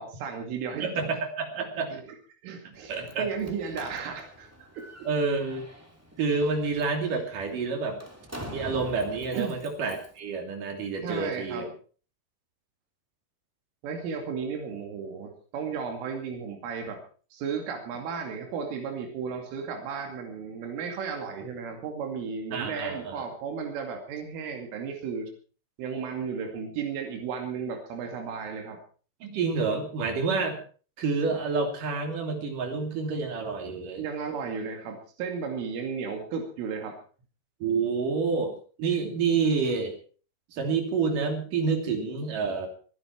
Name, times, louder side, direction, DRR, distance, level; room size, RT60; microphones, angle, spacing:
voice 1, 0.0-0.9 1.9-2.1 2.4-4.9 9.3-9.6 11.0-11.7 13.8-17.0 17.3-25.3 25.8-28.8 34.0-37.0, right 6 dB, 85° right, 4 dB, 5.0 m, -34 dB
voice 2, 0.7-1.9 2.6-3.3 5.1-5.6 6.2-8.0 8.5-11.7 22.5-23.2 29.2-30.6 31.0-34.0 37.6-40.0 40.5-42.7, right 4 dB, 45° right, 4 dB, 4.1 m, -28 dB
Slam, 2.7-10.2, equal, 10° right, 1.0 m, -45 dB
23.5 x 11.0 x 4.6 m, 0.40 s
omnidirectional pair, 5.6 m